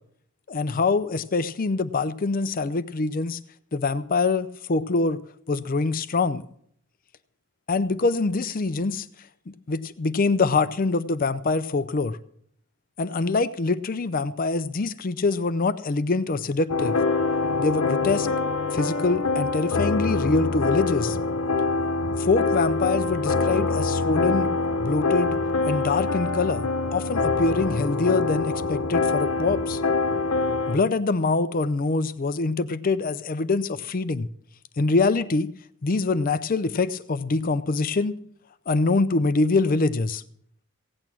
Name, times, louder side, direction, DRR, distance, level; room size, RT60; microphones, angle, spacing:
voice 1, 0.5-3.4 3.7-5.2 5.5-6.4 7.7-9.1 9.7-12.2 13.0-17.0 17.6-18.3 18.7-21.2 22.2-24.5 24.8-25.4 25.7-26.6 26.9-29.8 30.7-34.3 34.8-35.5 35.8-38.2 38.7-40.2, left 3 dB, 40° left, 12 dB, 0.5 m, -24 dB
sound 1, 16.7-30.8, left 3 dB, 85° left, 0.9 m, -25 dB
16.5 x 8.9 x 6.0 m, 0.65 s
head